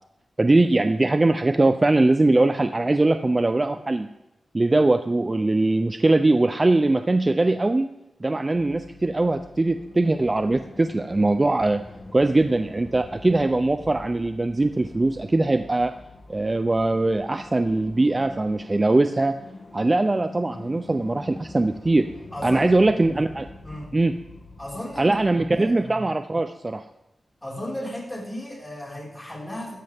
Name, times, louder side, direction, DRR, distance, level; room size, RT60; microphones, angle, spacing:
voice 1, 0.4-4.1 4.5-7.9 8.2-11.8 12.1-15.9 16.3-19.3 19.7-22.1 22.4-23.5 23.9-24.1 25.0-26.8, right 2 dB, 30° right, 9 dB, 0.5 m, -21 dB
sound 1, 8.5-25.7, left 2 dB, 60° left, 2.2 m, -45 dB
voice 2, 22.3-23.1 23.6-24.0 24.6-26.0 27.4-29.8, left 1 dB, 15° left, -4 dB, 5.0 m, -35 dB
15.0 x 13.0 x 3.6 m, 0.93 s
wide cardioid pair, 80°, 0 cm